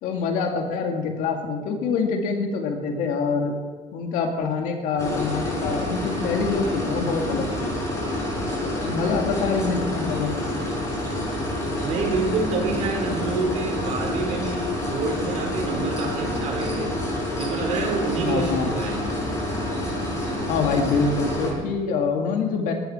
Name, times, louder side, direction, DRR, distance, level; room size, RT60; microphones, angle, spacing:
voice 1, 0.0-3.5 3.9-7.7 8.6-10.3 18.3-18.7 20.5-22.7, left 5 dB, 75° left, 3 dB, 2.2 m, -25 dB
sound 1, 5.0-21.5, left 1 dB, 20° left, 6.2 m, -28 dB
voice 2, 11.8-16.9 17.4-19.0, right 3 dB, 55° right, 2 dB, 4.0 m, -27 dB
18.5 x 14.0 x 4.4 m, 1.4 s
cardioid pair, 150°, 14 cm